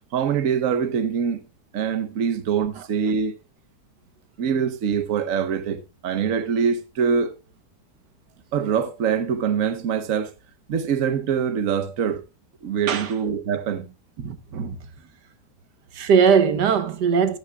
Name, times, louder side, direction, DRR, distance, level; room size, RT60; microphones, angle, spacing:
voice 1, 0.1-1.4 1.7-3.3 4.4-7.3 8.5-10.3 10.7-12.2 12.6-13.9, right 7 dB, 55° right, 1.3 m, -24 dB
voice 2, 2.8-3.1 12.9-13.2 14.2-14.8 15.9-17.4, right 6 dB, 90° right, 1.6 m, -21 dB
15.0 x 10.5 x 2.3 m
omnidirectional pair, 1.7 m